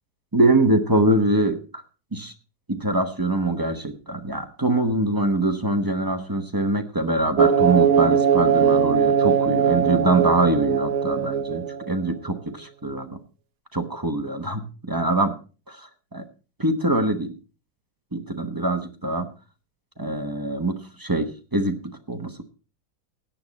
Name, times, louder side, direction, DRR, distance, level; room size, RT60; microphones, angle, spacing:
voice 1, 0.3-1.8 2.1-2.3 2.7-13.2 13.7-15.3 15.7-16.2 16.6-17.3 18.1-19.3 20.0-22.4, right 2 dB, 20° right, 5 dB, 0.5 m, -24 dB
sound 1, 7.4-12.1, right 7 dB, 85° right, 1.6 m, -20 dB
17.0 x 9.7 x 4.2 m, 0.35 s
omnidirectional pair, 2.2 m